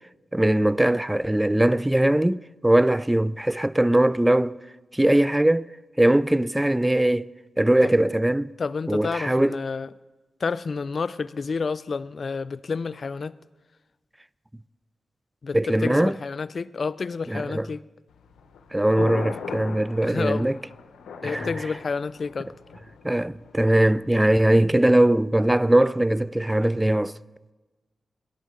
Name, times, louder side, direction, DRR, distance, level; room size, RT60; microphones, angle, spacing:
voice 1, 0.3-4.6 4.9-5.7 6.0-7.3 7.6-8.5 8.9-9.6 15.5-16.2 17.3-17.7 18.7-20.6 21.2-21.5 23.0-27.2, right 1 dB, 15° right, 0.3 m, -21 dB
voice 2, 8.6-9.9 10.4-13.4 15.4-17.8 20.0-20.5 21.2-22.5, left 4 dB, 60° left, 0.4 m, -29 dB
Thunder, 18.1-24.1, left 5 dB, 85° left, 0.8 m, -39 dB
18.5 x 11.5 x 3.8 m
supercardioid pair, 40°, 0 cm